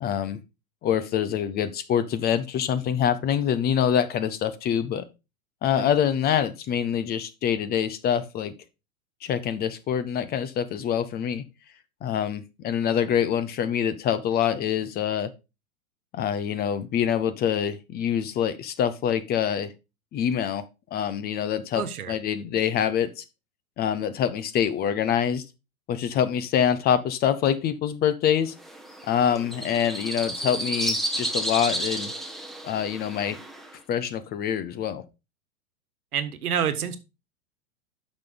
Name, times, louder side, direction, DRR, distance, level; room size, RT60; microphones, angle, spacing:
voice 1, 0.0-0.4 0.8-5.0 5.6-8.5 9.2-11.4 12.0-15.3 16.1-19.7 20.1-20.6 20.9-23.2 23.8-25.4 25.9-28.5 29.1-32.1 32.6-33.4 33.9-35.0, left 9 dB, 20° left, 14 dB, 0.6 m, -25 dB
voice 2, 21.7-22.1 36.1-37.0, right 8 dB, 85° right, 11 dB, 1.5 m, -28 dB
sound 1, 28.6-33.7, right 1 dB, ahead, 1.1 m, -32 dB
8.6 x 6.1 x 3.9 m, 0.27 s
hypercardioid pair, 120°, 43 cm